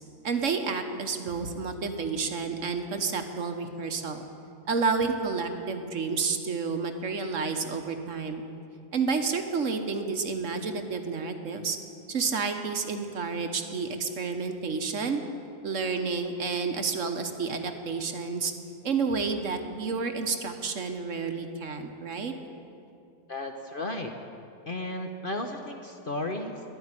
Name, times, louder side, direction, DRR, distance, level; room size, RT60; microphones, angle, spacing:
voice 1, 0.2-4.2 4.7-8.4 8.9-11.8 12.1-15.2 15.6-18.5 18.8-22.3, right 4 dB, 55° right, 6 dB, 1.3 m, -30 dB
voice 2, 23.3-24.1 24.7-26.6, left 1 dB, 40° left, 4 dB, 0.9 m, -34 dB
13.0 x 11.0 x 9.8 m, 2.6 s
omnidirectional pair, 1.7 m